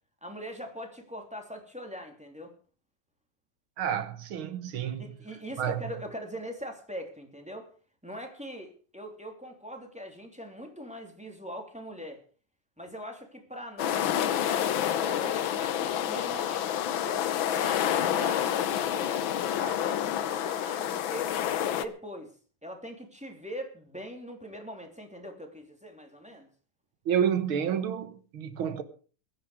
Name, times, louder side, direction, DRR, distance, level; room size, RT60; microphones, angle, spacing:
voice 1, 0.2-2.5 5.0-7.7 8.0-12.2 12.8-17.3 17.6-21.3 21.7-22.3 22.6-26.5, equal, 5° right, 2.8 m, -42 dB
voice 2, 3.8-5.1 5.6-5.8 27.1-28.8, right 8 dB, 70° right, 2.1 m, -29 dB
sound 1, 13.8-21.9, left 10 dB, 70° left, 1.6 m, -28 dB
22.0 x 9.7 x 4.9 m
omnidirectional pair, 2.4 m